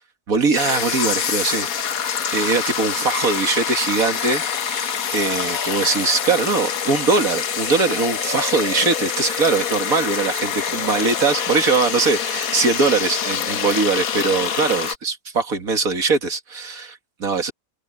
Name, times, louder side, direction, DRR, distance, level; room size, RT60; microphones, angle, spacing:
voice 1, 0.3-1.7 2.0-17.5, right 4 dB, 80° right, 2.4 m, -21 dB
sound 1, 0.5-15.0, left 7 dB, 85° left, 1.6 m, -25 dB
omnidirectional pair, 1.4 m